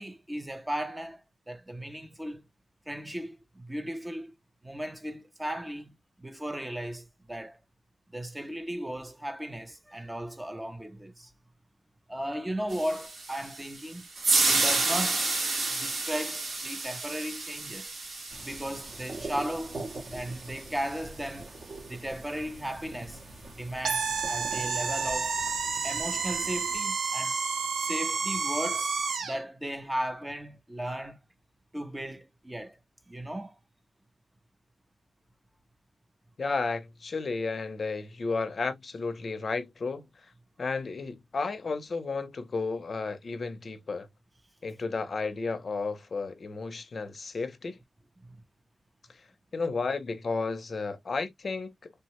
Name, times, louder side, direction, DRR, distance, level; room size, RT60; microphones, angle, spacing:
voice 1, 0.0-2.5 2.9-4.4 4.6-7.6 8.1-11.3 12.1-14.1 14.5-15.3 15.7-17.9 18.4-19.8 20.1-21.5 21.9-23.2 23.5-25.4 25.8-27.4 27.8-31.2 31.7-32.8 33.1-33.6 48.2-48.4, right 1 dB, 10° right, 0.4 m, -36 dB
sound 1, 12.7-21.0, right 3 dB, 70° right, 1.1 m, -31 dB
sound 2, 18.3-26.8, right 2 dB, 35° right, 0.7 m, -44 dB
sound 3, 23.8-29.4, right 5 dB, 85° right, 0.5 m, -30 dB
voice 2, 36.4-40.1 40.6-44.1 44.6-47.8 49.5-51.7, left 4 dB, 40° left, 0.5 m, -32 dB
3.3 x 2.1 x 2.9 m
wide cardioid pair, 175°, 0 cm